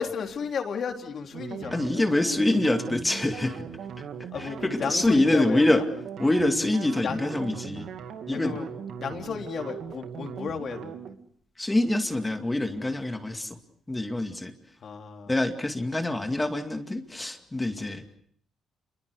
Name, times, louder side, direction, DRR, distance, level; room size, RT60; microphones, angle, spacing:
voice 1, 0.0-1.8 4.3-5.9 7.0-7.3 8.3-8.7 9.0-11.1 14.8-15.3, left 6 dB, 55° left, 4 dB, 4.0 m, -33 dB
sound 1, 1.3-11.2, right 7 dB, 70° right, 2.3 m, -39 dB
voice 2, 1.7-3.6 4.4-5.8 6.2-7.9 8.3-8.6 11.6-13.6 13.9-14.5 15.3-18.0, left 1 dB, 15° left, 6 dB, 2.3 m, -25 dB
28.5 x 23.0 x 6.7 m, 0.63 s
cardioid pair, 90°, 0 cm